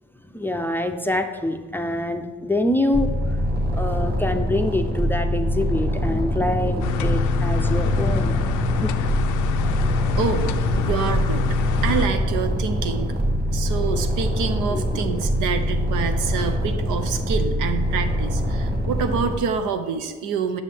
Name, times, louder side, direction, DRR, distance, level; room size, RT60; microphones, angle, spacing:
voice 1, 0.2-3.4 3.7-9.0 14.7-15.0, left 1 dB, 5° left, 5 dB, 0.4 m, -25 dB
sound 1, 2.9-19.4, equal, 30° right, 1.5 m, -24 dB
sound 2, 6.8-12.1, left 9 dB, 80° left, 0.5 m, -26 dB
sound 3, 9.0-14.1, right 1 dB, 60° right, 1.5 m, -34 dB
voice 2, 10.2-11.5 11.8-13.1 13.5-20.6, right 6 dB, 85° right, 7 dB, 0.7 m, -27 dB
7.2 x 6.5 x 3.4 m, 1.4 s
cardioid pair, 90°, 30 cm